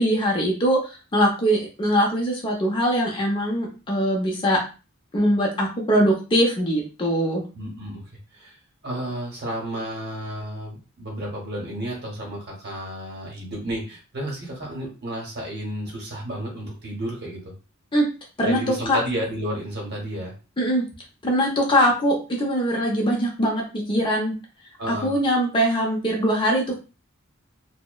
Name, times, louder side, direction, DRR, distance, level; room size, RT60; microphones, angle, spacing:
voice 1, 0.0-4.6 5.1-7.4 17.9-18.1 18.4-18.6 18.9-19.0 20.6-20.8 21.2-24.3 24.9-26.8, equal, 25° left, -2 dB, 0.6 m, -22 dB
voice 2, 7.5-8.0 8.3-8.6 8.8-17.5 18.4-20.3 24.8-25.1, equal, 50° right, -1 dB, 0.9 m, -31 dB
2.8 x 2.0 x 2.2 m, 0.33 s
head